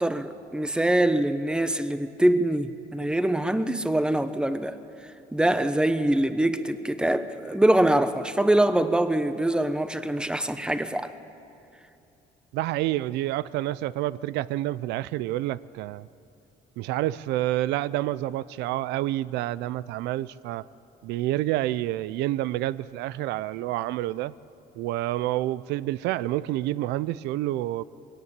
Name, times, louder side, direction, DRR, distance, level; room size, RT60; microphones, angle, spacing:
voice 1, 0.0-4.8 5.3-11.1, right 1 dB, 5° right, 1.0 m, -24 dB
voice 2, 12.5-16.1 16.8-20.6 21.0-24.3 24.8-27.8, right 15 dB, 90° right, 0.5 m, -28 dB
20.5 x 17.5 x 8.7 m
cardioid pair, 110°, 17 cm